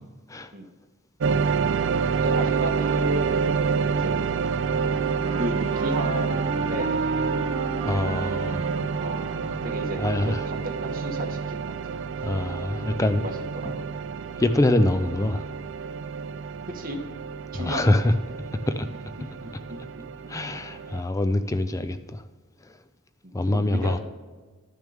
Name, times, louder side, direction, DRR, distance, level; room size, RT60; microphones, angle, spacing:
sound 1, 1.2-21.0, right 5 dB, 60° right, 0.4 m, -28 dB
voice 1, 2.2-4.2 5.4-7.1 9.0-9.3 9.6-10.0 10.3-12.0 13.1-13.9 14.2-14.4 16.7-17.0 17.5-18.1 19.4-19.8 23.2-24.0, right 1 dB, 40° right, 1.4 m, -34 dB
Wind instrument woodwind instrument, 4.7-10.0, right 2 dB, 25° right, 0.7 m, -34 dB
voice 2, 7.8-8.7 10.0-10.4 12.2-13.3 13.7-13.8 14.4-15.5 17.5-18.1 18.7-18.9 20.3-22.2 22.6-22.8 23.3-24.0, left 1 dB, 15° left, 0.4 m, -24 dB
12.0 x 6.3 x 3.5 m
head